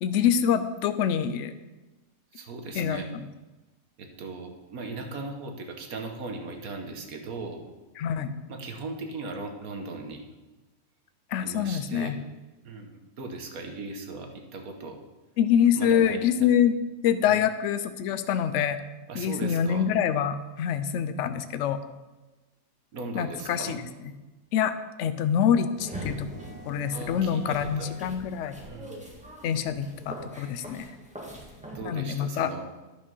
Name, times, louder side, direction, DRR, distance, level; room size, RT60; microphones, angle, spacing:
voice 1, 0.0-1.5 2.7-3.3 8.0-8.3 11.3-12.2 15.4-16.7 17.0-18.8 19.1-21.8 23.1-23.8 24.5-24.7 25.0-26.3 26.7-28.6 29.4-30.9 31.8-32.5, left 8 dB, 65° left, 11 dB, 0.9 m, -25 dB
voice 2, 2.3-3.1 4.0-7.7 8.5-10.2 11.4-12.2 12.6-15.0 15.7-16.5 17.3-17.4 19.1-19.9 22.9-23.8 26.9-28.0 28.6-29.0 31.7-32.7, right 3 dB, 80° right, 4 dB, 1.5 m, -38 dB
sound 1, 25.8-31.8, equal, 5° right, 1.4 m, -42 dB
11.0 x 5.1 x 5.5 m, 1.1 s
omnidirectional pair, 1.5 m